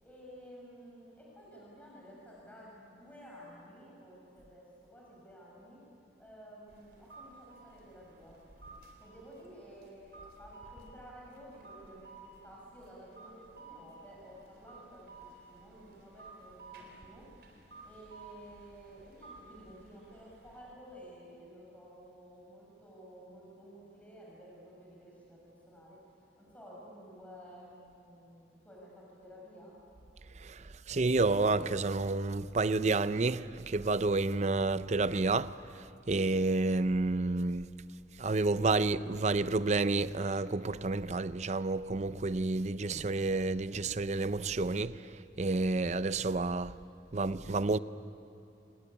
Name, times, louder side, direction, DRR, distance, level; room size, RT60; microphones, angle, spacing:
voice 1, 0.0-4.7 4.9-5.8 6.2-8.4 9.0-17.3 17.8-26.0 26.4-29.8, equal, 10° left, 6.8 m, -53 dB
sound 1, 6.7-20.6, right 3 dB, 65° right, 3.8 m, -54 dB
voice 2, 30.4-37.7 38.2-45.1 45.4-46.7 47.1-47.8, right 3 dB, 40° right, 0.6 m, -30 dB
26.5 x 19.5 x 9.9 m
head